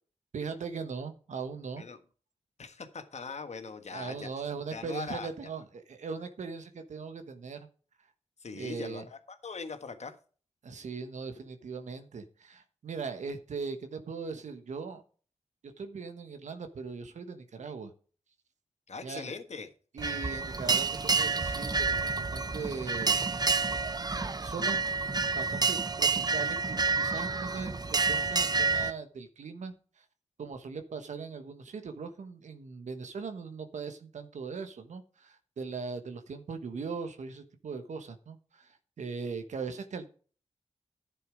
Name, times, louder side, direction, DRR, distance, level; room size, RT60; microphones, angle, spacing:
voice 1, 0.3-1.9 3.9-7.7 8.5-9.1 10.6-15.0 15.6-17.9 19.0-19.3 19.9-23.2 24.4-24.8 25.3-30.0 30.4-40.1, right 5 dB, 85° right, 1.2 m, -39 dB
voice 2, 2.6-4.3 4.7-5.3 8.4-10.1 18.9-19.7, left 4 dB, 70° left, 1.5 m, -41 dB
sound 1, 20.0-28.9, right 4 dB, 35° right, 0.8 m, -29 dB
11.0 x 6.9 x 5.0 m
cardioid pair, 50°, 12 cm